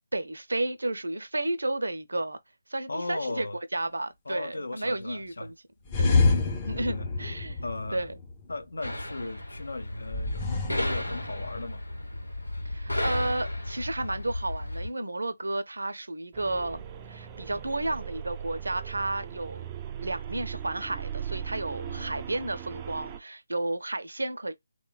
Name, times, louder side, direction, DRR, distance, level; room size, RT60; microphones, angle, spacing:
voice 1, 0.1-2.4 2.7-3.5 3.7-5.5 6.0-6.2 6.6-7.6 7.9-8.1 12.6-19.7 20.0-24.5, right 2 dB, 70° right, 0.5 m, -32 dB
voice 2, 2.9-3.6 4.3-5.5 6.7-7.1 7.6-8.1 8.5-11.8 21.8-22.3, left 2 dB, 65° left, 0.6 m, -37 dB
sound 1, 5.9-8.5 10.1-11.8, left 3 dB, 20° left, 0.6 m, -27 dB
sound 2, 8.8-14.9, left 1 dB, 85° left, 0.9 m, -34 dB
sound 3, 16.3-23.2, right 9 dB, 20° right, 0.3 m, -39 dB
3.1 x 2.1 x 2.2 m
figure-of-eight pair, 150°, 0 cm